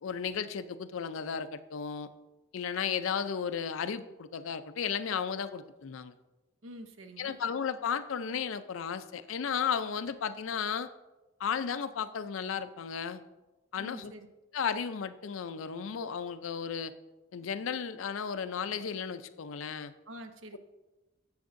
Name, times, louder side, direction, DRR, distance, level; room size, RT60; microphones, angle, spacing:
voice 1, 0.0-2.1 2.5-6.1 7.2-10.9 11.4-13.2 13.7-14.1 14.5-16.9 17.3-19.9, left 7 dB, 80° left, 12 dB, 0.4 m, -34 dB
voice 2, 6.6-7.4 13.8-14.3 20.1-20.6, equal, 75° right, 7 dB, 0.8 m, -46 dB
10.5 x 7.1 x 2.6 m, 1.1 s
head